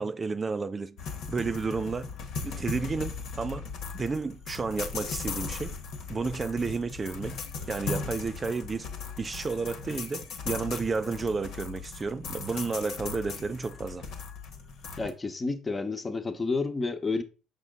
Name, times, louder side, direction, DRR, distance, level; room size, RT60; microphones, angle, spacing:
voice 1, 0.0-2.1 2.4-3.7 3.9-5.7 6.1-7.4 7.7-8.9 9.2-14.0, right 4 dB, 30° right, 0.3 m, -32 dB
sound 1, 1.0-15.1, left 5 dB, 60° left, 1.2 m, -38 dB
voice 2, 15.0-17.2, left 3 dB, 25° left, 1.0 m, -30 dB
6.0 x 5.3 x 3.7 m
hypercardioid pair, 55°, 0 cm